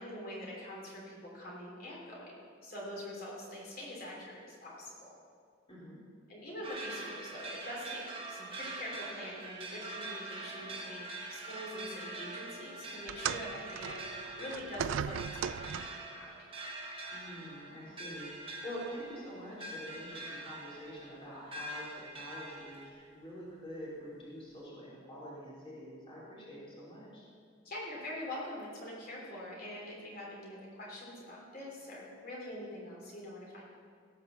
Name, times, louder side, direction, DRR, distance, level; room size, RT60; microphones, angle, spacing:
voice 1, 0.0-2.4 2.6-5.1 6.3-8.0 8.3-16.3 27.6-33.6, left 1 dB, 50° left, -4 dB, 3.3 m, -44 dB
voice 2, 5.7-6.0 17.1-27.2, equal, 30° left, -7 dB, 3.3 m, -46 dB
sound 1, 6.6-22.9, right 2 dB, 30° right, 1.6 m, -44 dB
sound 2, 13.1-16.1 17.1-17.3 18.1-18.2, right 8 dB, 80° right, 0.3 m, -38 dB
17.5 x 5.9 x 6.8 m, 2.1 s
head